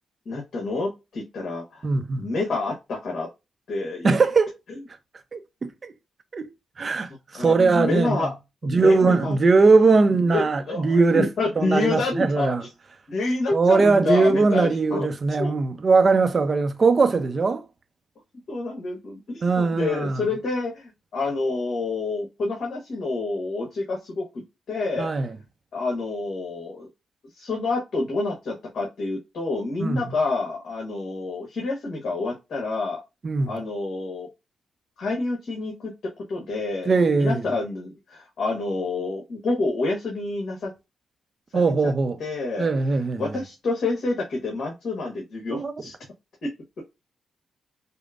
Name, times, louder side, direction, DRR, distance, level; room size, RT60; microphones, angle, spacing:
voice 1, 0.2-1.8 2.2-3.3 3.7-4.2 7.1-8.3 8.6-9.4 10.3-12.7 13.1-15.1 15.4-15.5 18.5-25.1 25.7-26.9 27.3-33.0 33.5-34.3 35.0-35.9 36.3-40.7 41.5-41.9 42.2-42.7 43.2-45.9 46.4-46.5, left 3 dB, 65° left, 1.4 m, -28 dB
voice 2, 1.8-2.3 4.0-4.5 5.3-5.9 6.3-6.5 6.8-8.3 8.6-11.3 11.6-12.6 13.5-17.6 19.4-20.3 25.0-25.4 29.8-30.1 33.2-33.5 36.9-37.4 41.5-42.2 42.6-43.4 45.5-45.7, right 4 dB, 40° right, 0.6 m, -20 dB
5.2 x 2.1 x 2.4 m
cardioid pair, 105°, 0 cm